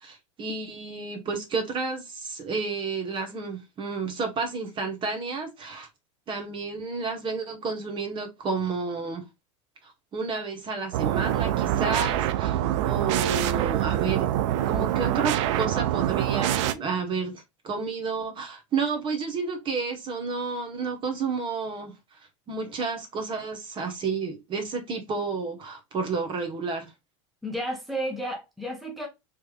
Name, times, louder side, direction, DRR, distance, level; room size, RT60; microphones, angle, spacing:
voice 1, 0.0-5.9 6.3-9.2 9.8-12.6 12.8-14.3 14.6-22.0 22.5-26.9, right 4 dB, 30° right, 1.2 m, -31 dB
sound 1, 10.9-16.7, right 12 dB, 65° right, 0.5 m, -25 dB
voice 2, 27.4-29.1, equal, ahead, 1.0 m, -32 dB
3.4 x 3.1 x 2.3 m
supercardioid pair, 120°, 17 cm